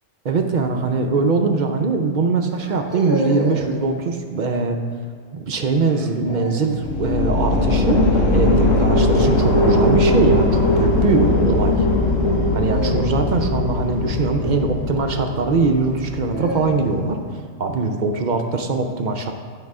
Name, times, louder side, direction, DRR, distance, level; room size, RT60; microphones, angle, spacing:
voice 1, 0.2-4.8 5.3-11.8 12.5-17.2 17.6-19.3, right 4 dB, 55° right, 4 dB, 0.5 m, -22 dB
sound 1, 0.6-1.0 2.5-3.8 5.9-6.8 9.3-9.7 12.5-14.8 15.9-17.2, right 1 dB, 20° right, 1.6 m, -31 dB
sound 2, 6.8-16.7, left 2 dB, 75° left, 1.2 m, -19 dB
8.7 x 4.8 x 4.7 m, 2.2 s
omnidirectional pair, 1.3 m